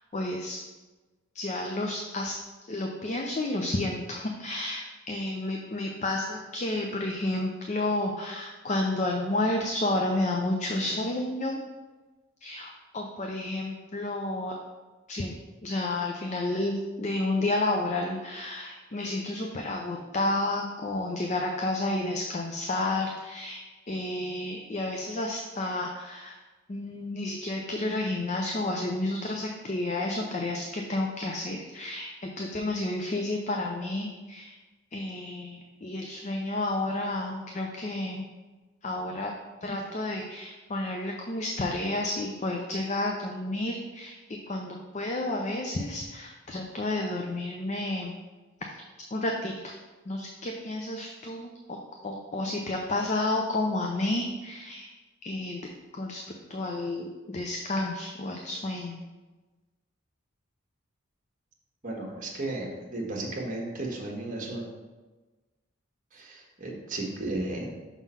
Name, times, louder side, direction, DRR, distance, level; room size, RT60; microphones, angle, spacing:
voice 1, 0.1-0.6 1.3-2.3 2.6-11.6 12.4-14.6 15.1-15.4 15.6-26.4 26.7-34.6 34.9-38.3 38.8-39.3 39.6-48.1 48.6-48.8 49.1-49.8 50.0-51.8 52.0-54.9 55.2-56.2 56.5-59.0, left 2 dB, 35° left, 1 dB, 0.4 m, -31 dB
voice 2, 61.8-64.6 66.1-67.7, right 2 dB, 40° right, -1 dB, 1.3 m, -34 dB
6.0 x 3.7 x 5.5 m, 1.2 s
head